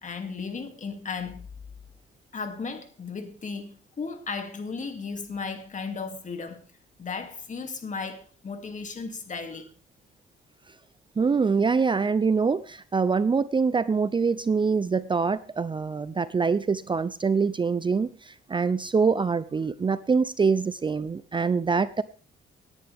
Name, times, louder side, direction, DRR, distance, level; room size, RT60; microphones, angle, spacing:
voice 1, 0.0-1.5 2.3-6.6 7.0-9.7, left 4 dB, 40° left, 2.6 m, -35 dB
voice 2, 11.2-22.0, right 5 dB, 25° right, 0.5 m, -24 dB
18.5 x 10.5 x 3.5 m
cardioid pair, 90°, 20 cm